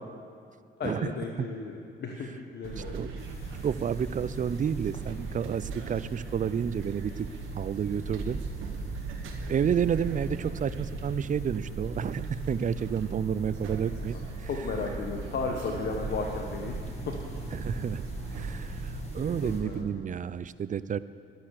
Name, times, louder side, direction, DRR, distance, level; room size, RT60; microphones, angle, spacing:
voice 1, 0.8-3.0 3.4-3.5 14.1-14.2 14.5-16.8 17.1-17.2 19.4-19.9, left 4 dB, 60° left, 1 dB, 1.3 m, -34 dB
sound 1, 2.6-19.8, right 3 dB, 85° right, 1.5 m, -38 dB
sound 2, 3.2-19.6, left 2 dB, 30° left, 2.2 m, -53 dB
voice 2, 3.6-7.3 7.5-8.4 9.5-14.2 17.5-18.1 18.3-21.0, right 7 dB, 40° right, 16 dB, 0.5 m, -30 dB
sound 3, 8.0-18.1, right 1 dB, 15° right, 3.9 m, -45 dB
12.5 x 12.0 x 6.6 m, 2.4 s
cardioid pair, 90°, 20 cm